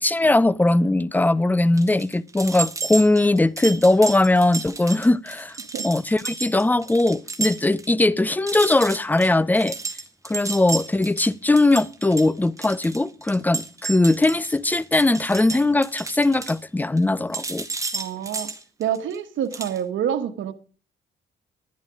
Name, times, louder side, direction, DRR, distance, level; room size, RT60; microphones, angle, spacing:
voice 1, 0.0-5.5 5.8-9.8 10.2-17.7, left 2 dB, 10° left, 0.5 m, -20 dB
sound 1, 1.8-7.9 8.2-8.3 8.5-17.0 17.3-19.2 19.5-19.8, right 4 dB, 15° right, 1.9 m, -32 dB
voice 2, 17.9-18.5 18.8-20.5, right 9 dB, 75° right, 1.3 m, -27 dB
11.0 x 10.5 x 4.9 m
cardioid pair, 90°, 20 cm